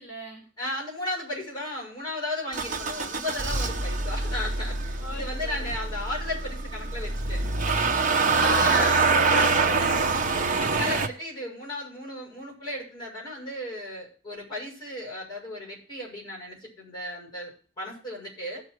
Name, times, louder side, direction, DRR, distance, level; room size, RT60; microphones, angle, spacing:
voice 1, 0.0-0.5 5.0-5.7 8.0-9.3 9.7-11.0, left 2 dB, 10° right, -5 dB, 3.9 m, -38 dB
voice 2, 0.6-7.4 8.6-9.8 10.2-18.6, left 1 dB, 20° left, -2 dB, 6.7 m, -35 dB
Motor vehicle (road) / Engine starting, 2.5-11.1, right 4 dB, 35° right, 1.0 m, -25 dB
17.0 x 6.4 x 4.6 m, 0.40 s
head